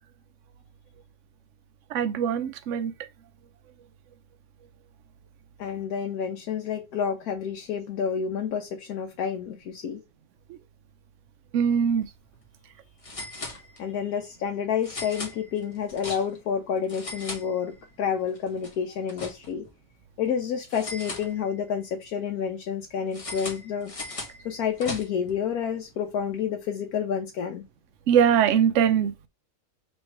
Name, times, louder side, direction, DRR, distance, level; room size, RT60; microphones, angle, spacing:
voice 1, 1.9-2.9 11.5-12.1 28.1-29.3, right 8 dB, 65° right, 0.9 m, -22 dB
voice 2, 5.6-10.0 13.8-19.7 20.2-23.9 24.4-27.6, left 7 dB, 85° left, 1.2 m, -29 dB
sound 1, 11.9-12.0 12.3-12.4 13.0-14.1 14.8-16.5 16.8-18.0 18.3-19.7 20.7-21.8 23.1-25.4, left 2 dB, 30° left, 0.8 m, -39 dB
3.2 x 3.1 x 4.4 m
omnidirectional pair, 1.5 m